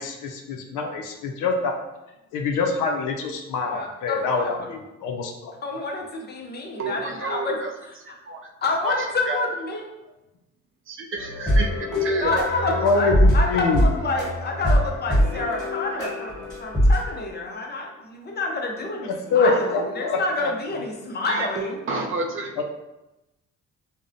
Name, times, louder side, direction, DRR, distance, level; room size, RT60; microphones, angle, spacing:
voice 1, 0.0-1.8 2.3-5.6 12.0-12.1 12.7-13.8 19.0-20.5 22.6-22.7, left 4 dB, 80° left, 3 dB, 0.5 m, -25 dB
voice 2, 3.6-4.7 5.6-7.6 8.6-9.9 12.2-21.8, left 3 dB, 35° left, 1 dB, 0.5 m, -28 dB
voice 3, 6.8-7.7 8.3-8.5 8.8-9.5 10.0-10.1 10.9-11.7 12.0-12.8 21.3-22.6, right 3 dB, 45° right, 2 dB, 0.4 m, -30 dB
sound 1, 11.2-17.1, equal, 15° left, 1.5 m, -22 dB
2.6 x 2.0 x 2.5 m, 0.97 s
cardioid pair, 90°, 30 cm